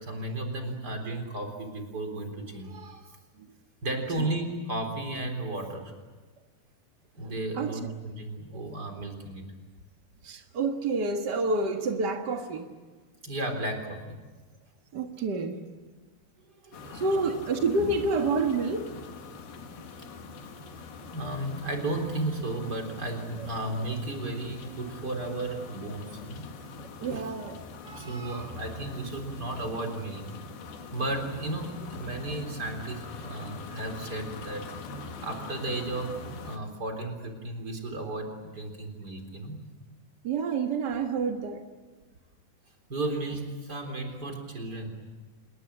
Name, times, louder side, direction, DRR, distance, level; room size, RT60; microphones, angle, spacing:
voice 1, 0.0-3.2 3.8-5.9 7.1-9.4 13.2-14.2 16.6-17.2 20.7-20.8 21.1-26.5 27.0-27.3 27.8-30.2 30.9-34.7 35.2-39.6 42.9-44.9, right 2 dB, 25° right, 4 dB, 4.0 m, -34 dB
voice 2, 10.2-12.7 14.9-15.6 16.9-18.9 27.0-27.5 40.2-41.6, right 3 dB, 70° right, 4 dB, 1.0 m, -28 dB
sound 1, 16.7-36.6, left 4 dB, 80° left, 3.8 m, -43 dB
27.0 x 21.5 x 8.6 m, 1.3 s
omnidirectional pair, 4.3 m